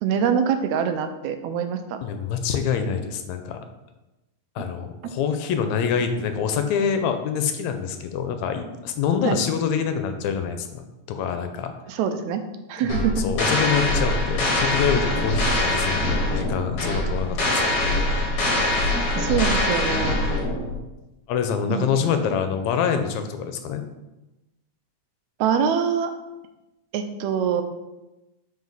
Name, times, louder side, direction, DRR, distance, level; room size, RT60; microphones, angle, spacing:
voice 1, 0.0-2.0 9.2-9.4 11.9-12.4 12.7-13.2 19.2-20.2 21.7-21.9 22.2-22.3 25.4-26.1 26.9-27.6, right 7 dB, 80° right, 7 dB, 1.9 m, -24 dB
voice 2, 2.0-3.6 4.6-11.7 12.8-18.0 21.3-23.8, left 7 dB, 80° left, 7 dB, 1.8 m, -26 dB
sound 1, 12.9-20.8, left 1 dB, 60° left, 2.0 m, -23 dB
4.7 x 4.2 x 5.3 m, 1.0 s
omnidirectional pair, 3.3 m